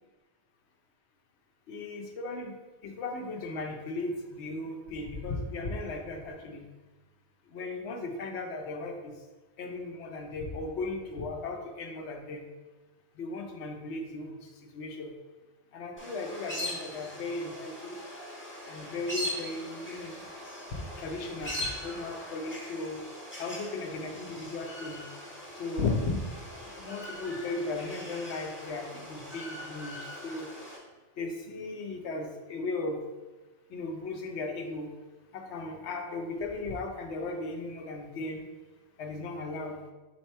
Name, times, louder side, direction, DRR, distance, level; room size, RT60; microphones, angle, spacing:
voice 1, 1.7-2.5 2.8-6.6 7.5-9.1 9.6-12.4 13.2-14.3 14.7-15.1 15.7-18.0 18.7-20.2 21.0-23.0 23.4-25.0 25.6-26.2 26.8-30.5 31.2-33.0 33.7-34.9 35.3-38.4 39.0-39.8, left 3 dB, 85° left, 3 dB, 0.9 m, -36 dB
sound 1, 16.0-30.8, left 1 dB, 15° left, 0.7 m, -41 dB
3.7 x 2.9 x 4.4 m, 1.2 s
omnidirectional pair, 1.1 m